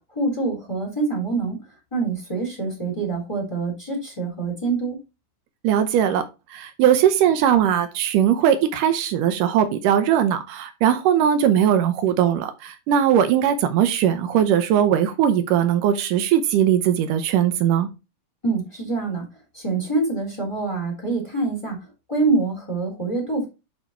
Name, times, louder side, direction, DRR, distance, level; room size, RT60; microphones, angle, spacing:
voice 1, 0.1-1.6 1.9-5.0 18.4-19.2 19.5-21.8 22.1-23.5, right 3 dB, 10° left, 3.5 m, -25 dB
voice 2, 5.6-6.2 6.5-17.9, right 9 dB, 85° right, 2.4 m, -19 dB
6.6 x 5.1 x 4.5 m
omnidirectional pair, 3.7 m